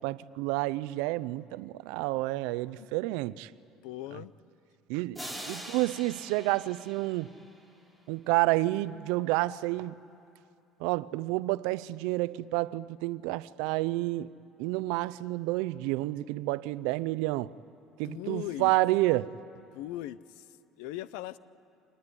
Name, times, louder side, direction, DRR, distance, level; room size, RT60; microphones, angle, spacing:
voice 1, 0.0-3.5 4.9-5.2 5.5-7.3 8.1-10.0 10.8-14.3 14.6-17.5 18.0-19.3, right 19 dB, 85° right, 0.5 m, -29 dB
voice 2, 3.8-4.3 18.0-18.7 19.7-21.4, left 14 dB, 85° left, 0.7 m, -39 dB
sound 1, 5.1-7.8, equal, 5° left, 3.9 m, -43 dB
26.0 x 19.0 x 9.8 m
cardioid pair, 140°, 0 cm